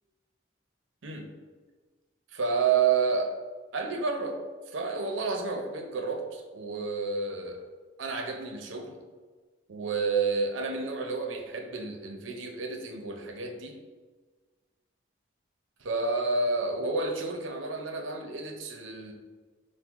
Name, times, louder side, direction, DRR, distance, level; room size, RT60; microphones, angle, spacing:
voice 1, 2.3-3.3 3.7-4.4 4.7-7.7 8.0-9.0 9.7-13.8 15.8-19.1, right 4 dB, 85° right, 3 dB, 0.6 m, -30 dB
6.0 x 2.1 x 3.5 m, 1.4 s
head